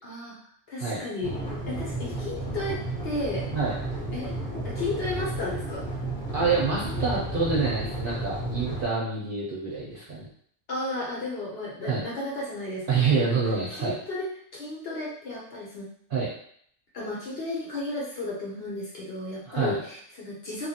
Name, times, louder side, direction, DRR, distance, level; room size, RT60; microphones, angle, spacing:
voice 1, 0.0-0.4 0.7-1.3 1.7-3.5 4.1-4.3 4.6-5.9 10.7-13.4 13.7-15.9 16.9-20.7, left 2 dB, 55° left, -4 dB, 0.8 m, -34 dB
sound 1, 1.2-8.8, right 1 dB, 20° left, 0.7 m, -32 dB
voice 2, 6.3-10.3 11.8-12.0 12.9-14.0 16.1-16.3 19.5-19.8, right 4 dB, 55° right, -5 dB, 0.7 m, -26 dB
2.9 x 2.4 x 2.7 m, 0.63 s
omnidirectional pair, 1.4 m